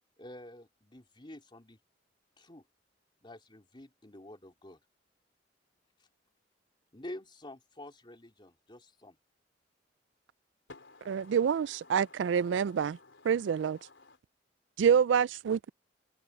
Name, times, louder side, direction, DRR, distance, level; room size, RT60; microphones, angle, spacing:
voice 1, 0.2-1.8 2.4-2.6 3.2-4.8 6.9-9.2, left 1 dB, 25° left, 3.5 m, -48 dB
voice 2, 10.7-14.2, left 3 dB, 75° left, 4.0 m, -56 dB
voice 3, 11.3-13.0 13.3-13.8 14.8-15.7, right 7 dB, 70° right, 0.3 m, -26 dB
head